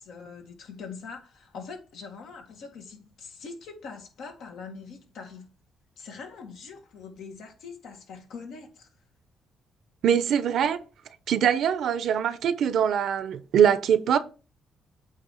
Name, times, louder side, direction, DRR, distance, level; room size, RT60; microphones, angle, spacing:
voice 1, 0.0-5.5 6.0-8.9, left 5 dB, 80° left, 1.8 m, -43 dB
voice 2, 10.0-10.8 11.3-14.2, right 8 dB, 70° right, 0.7 m, -23 dB
8.4 x 3.0 x 6.3 m
cardioid pair, 90°, 0 cm